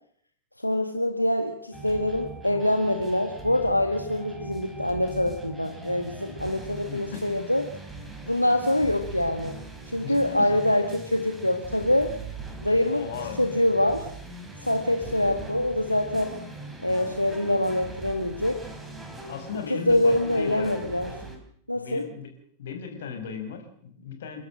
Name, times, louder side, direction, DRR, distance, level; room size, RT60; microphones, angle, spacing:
voice 1, 0.6-7.7 8.3-9.6 9.9-12.1 12.6-13.0 13.4-14.1 14.6-16.4 16.8-18.6 19.7-21.1 21.7-22.0, left 1 dB, 90° left, 5 dB, 1.6 m, -25 dB
sound 1, 1.7-21.4, right 2 dB, 10° right, 4.5 m, -41 dB
voice 2, 6.9-7.2 10.0-10.6 12.9-13.4 15.0-15.5 19.3-20.8 21.7-22.3 22.6-24.4, left 6 dB, 60° left, 4 dB, 5.8 m, -37 dB
30.0 x 12.0 x 7.6 m, 0.65 s
figure-of-eight pair, 90°, 0 cm